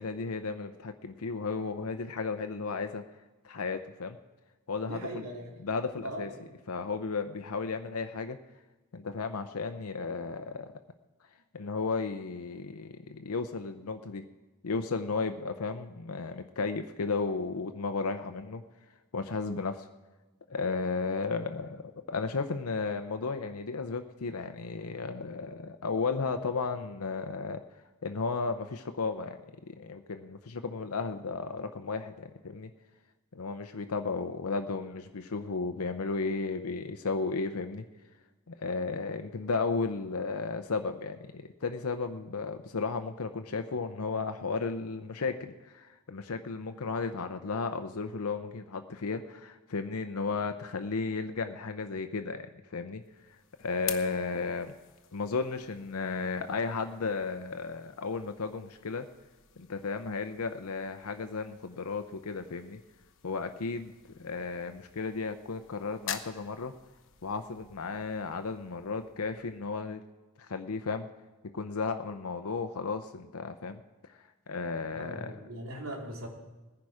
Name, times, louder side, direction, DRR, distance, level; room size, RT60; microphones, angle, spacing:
voice 1, 0.0-3.0 3.4-4.2 4.7-5.2 5.6-6.3 6.7-8.4 8.9-10.7 11.5-14.2 14.6-18.6 19.1-19.9 20.5-21.8 22.1-27.6 28.0-32.7 33.3-37.8 38.5-54.7 55.1-59.1 59.6-62.8 63.2-63.9 64.2-66.7 67.2-70.0 70.4-71.1 71.5-73.8 74.1-75.4, left 4 dB, 90° left, 7 dB, 0.7 m, -34 dB
voice 2, 4.8-5.5 6.0-6.3 74.9-76.3, right 1 dB, 70° right, -1 dB, 3.2 m, -39 dB
sound 1, 53.0-70.0, left 10 dB, 60° left, 1.0 m, -48 dB
19.5 x 10.5 x 4.9 m, 1.2 s
head